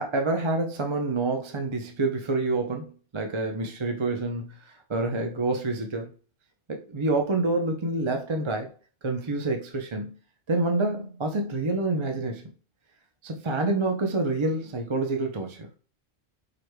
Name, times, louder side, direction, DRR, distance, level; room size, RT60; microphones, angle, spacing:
voice 1, 0.0-4.5 4.9-6.1 6.7-8.7 9.0-10.1 10.5-12.4 13.2-15.7, right 2 dB, 35° right, 0.6 m, -27 dB
4.9 x 4.6 x 2.2 m
omnidirectional pair, 1.2 m